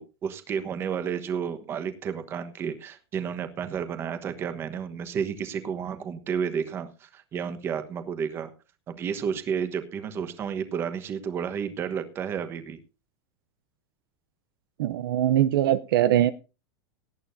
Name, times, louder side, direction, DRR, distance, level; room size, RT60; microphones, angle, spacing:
voice 1, 0.0-8.5 8.9-12.8, right 7 dB, 20° right, 9 dB, 1.2 m, -31 dB
voice 2, 14.8-16.3, right 12 dB, 65° right, 12 dB, 0.7 m, -22 dB
18.5 x 11.0 x 2.7 m, 0.32 s
supercardioid pair, 175°, 13 cm